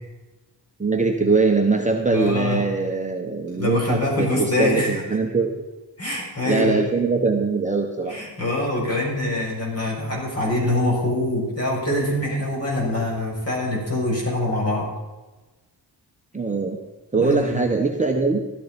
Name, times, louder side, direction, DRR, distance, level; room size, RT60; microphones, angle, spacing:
voice 1, 0.8-5.6 6.4-8.2 16.3-16.8 17.1-18.4, right 4 dB, 15° right, 1 dB, 1.2 m, -22 dB
voice 2, 2.1-2.6 3.5-4.9 6.0-6.9 8.1-14.9 17.1-17.6, left 1 dB, 35° left, -3 dB, 6.6 m, -24 dB
16.5 x 12.5 x 5.3 m, 1.2 s
wide cardioid pair, 160°, 42 cm